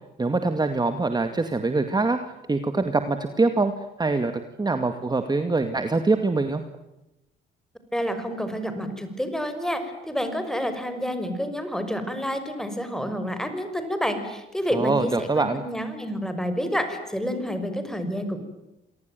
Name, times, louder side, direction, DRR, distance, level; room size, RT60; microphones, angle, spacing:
voice 1, 0.2-2.2 2.5-3.7 4.0-6.6 14.7-15.6, right 3 dB, 20° right, 8 dB, 2.2 m, -24 dB
voice 2, 7.9-18.4, equal, 5° left, 9 dB, 5.9 m, -29 dB
27.5 x 19.0 x 9.4 m, 0.94 s
cardioid pair, 90°, 20 cm